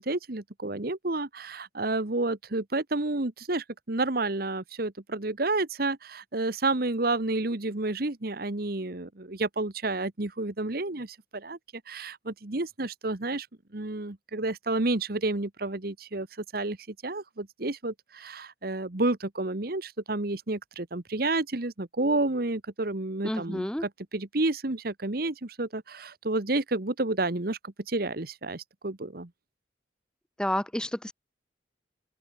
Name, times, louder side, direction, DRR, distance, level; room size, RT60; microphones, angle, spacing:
voice 1, 0.0-11.6 11.9-13.5 13.7-16.3 16.5-29.3, right 2 dB, 55° right, 1.3 m, -30 dB
voice 2, 23.2-23.8 30.4-31.1, left 1 dB, 5° left, 0.9 m, -30 dB
open air
head